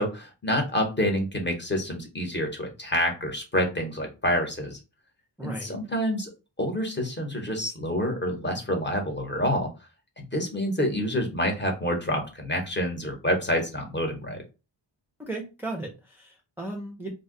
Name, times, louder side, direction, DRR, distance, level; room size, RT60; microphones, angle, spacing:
voice 1, 0.0-4.8 5.4-6.3 6.6-9.7 10.3-14.4, equal, 25° left, 0.8 m, -27 dB
voice 2, 5.4-5.8 15.2-17.1, right 2 dB, 5° right, 0.4 m, -36 dB
2.5 x 2.2 x 3.6 m
wide cardioid pair, 145°, 45 cm